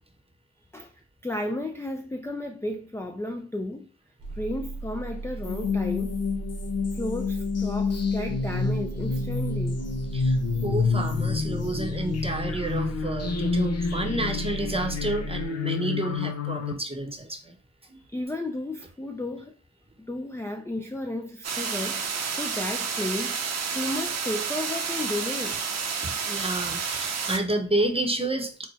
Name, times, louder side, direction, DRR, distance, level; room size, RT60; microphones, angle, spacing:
voice 1, 1.2-3.9 4.3-6.2 6.9-9.8 18.1-19.5 20.0-25.6, left 1 dB, 10° left, 0.4 m, -33 dB
sound 1, 4.2-15.5, right 3 dB, 80° right, 1.0 m, -37 dB
sound 2, 5.4-16.7, left 4 dB, 55° left, 0.6 m, -28 dB
voice 2, 10.1-17.5 17.9-18.0 26.0-28.7, right 1 dB, 20° right, 0.9 m, -30 dB
sound 3, 21.4-27.4, right 6 dB, 60° right, 0.7 m, -30 dB
4.3 x 2.2 x 2.7 m
cardioid pair, 40°, 30 cm